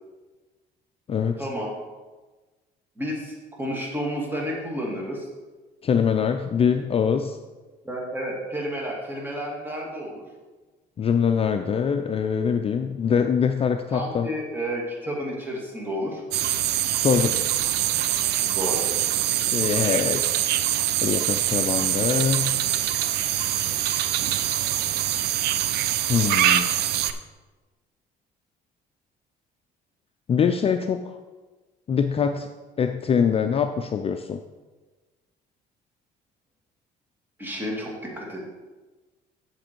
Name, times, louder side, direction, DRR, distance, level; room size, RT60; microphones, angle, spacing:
voice 1, 1.4-1.7 3.0-5.3 7.8-10.2 13.9-16.2 18.5-18.8 37.4-38.4, equal, 10° right, -2 dB, 2.3 m, -31 dB
voice 2, 5.8-7.4 11.0-14.3 16.9-17.4 19.5-20.2 21.0-22.5 26.1-26.7 30.3-31.0 31.9-32.5 32.8-34.4, left 7 dB, 35° left, 6 dB, 0.4 m, -23 dB
sound 1, 16.3-27.1, right 12 dB, 75° right, 0.5 m, -24 dB
7.7 x 7.1 x 4.5 m, 1.3 s
cardioid pair, 110°, 17 cm